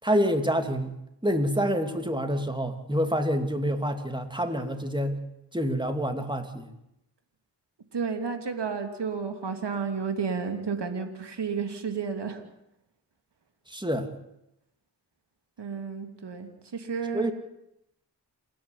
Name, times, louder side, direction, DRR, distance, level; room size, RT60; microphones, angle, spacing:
voice 1, 0.0-0.9 1.2-5.2 5.5-6.7 13.7-14.1 17.1-17.3, equal, 10° right, 6 dB, 3.0 m, -27 dB
voice 2, 7.9-12.4 15.6-17.3, right 5 dB, 65° right, 6 dB, 3.0 m, -32 dB
28.5 x 10.5 x 10.0 m, 0.83 s
cardioid pair, 45°, 44 cm